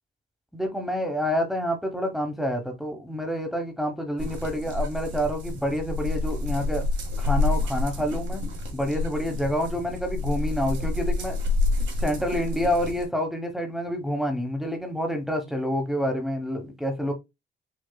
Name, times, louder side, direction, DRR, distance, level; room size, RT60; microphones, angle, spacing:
voice 1, 0.5-6.9 7.2-8.4 8.7-11.4 12.0-17.1, equal, ahead, 1.1 m, -28 dB
sound 1, 4.2-13.1, left 3 dB, 75° right, 1.7 m, -28 dB
6.7 x 2.3 x 2.2 m
cardioid pair, 90°, 20 cm